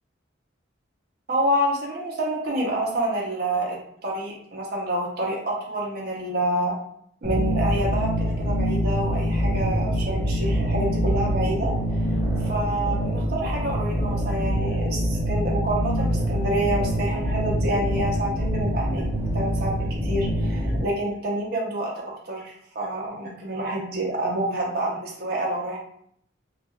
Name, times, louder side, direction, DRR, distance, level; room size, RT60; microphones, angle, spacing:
voice 1, 1.3-6.7 7.2-11.7 12.4-19.1 19.3-25.8, right 1 dB, 55° right, -3 dB, 0.6 m, -28 dB
sound 1, 7.2-20.8, equal, 10° right, 0.7 m, -25 dB
2.2 x 2.2 x 3.0 m, 0.67 s
head